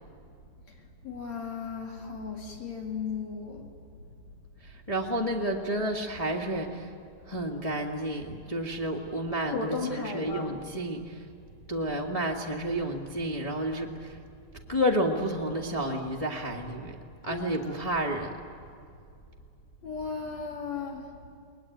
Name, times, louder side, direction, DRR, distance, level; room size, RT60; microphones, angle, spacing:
voice 1, 1.0-3.7 9.5-10.6 17.3-18.0 19.8-21.1, left 5 dB, 50° left, 1 dB, 3.7 m, -36 dB
voice 2, 4.6-6.9 7.3-11.2 11.7-14.2 14.7-16.9 17.2-18.3, right 1 dB, 30° left, -1 dB, 0.6 m, -30 dB
30.0 x 20.5 x 9.2 m, 2.5 s
omnidirectional pair, 4.2 m